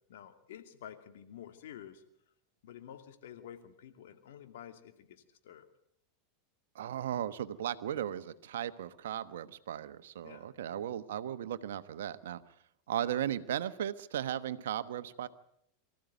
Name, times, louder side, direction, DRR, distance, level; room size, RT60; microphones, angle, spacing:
voice 1, 0.1-2.0 2.6-5.7 10.2-10.5, left 10 dB, 70° left, 7 dB, 2.5 m, -50 dB
voice 2, 6.7-12.4 12.9-15.3, right 10 dB, 75° right, 13 dB, 1.1 m, -36 dB
24.0 x 14.5 x 9.3 m, 0.75 s
hypercardioid pair, 95°, 0 cm